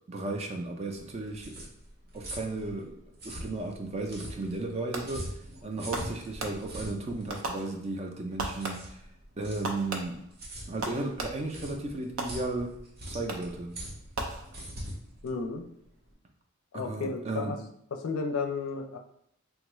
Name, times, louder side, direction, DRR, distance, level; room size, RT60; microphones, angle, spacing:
voice 1, 0.1-1.7 2.1-3.0 3.2-5.2 5.6-9.0 9.4-10.2 10.7-12.7 13.1-13.7 16.7-17.6, right 2 dB, 30° right, 3 dB, 0.4 m, -34 dB
sound 1, 1.0-16.1, equal, 50° right, 0.7 m, -43 dB
Fireworks, 4.9-5.4 5.9-6.9 7.3-8.1 8.4-9.1 9.6-11.6 12.2-12.8 13.3-13.7 14.1-14.9, right 2 dB, 80° right, 0.5 m, -38 dB
voice 2, 15.2-15.7 16.7-17.6 17.9-19.0, left 4 dB, 85° left, 5 dB, 0.4 m, -33 dB
3.4 x 2.3 x 3.0 m, 0.73 s
head